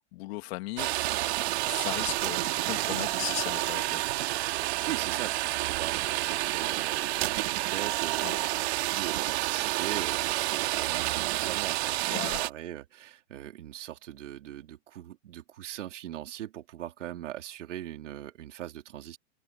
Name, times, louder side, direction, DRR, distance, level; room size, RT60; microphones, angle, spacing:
voice 1, 0.1-4.3 8.2-8.4 12.1-12.4, left 20 dB, 60° left, 2.6 m, -38 dB
sound 1, 0.8-12.5, right 18 dB, 60° right, 2.3 m, -29 dB
voice 2, 4.7-19.2, right 12 dB, 80° right, 3.7 m, -40 dB
hypercardioid pair, 135°, 36 cm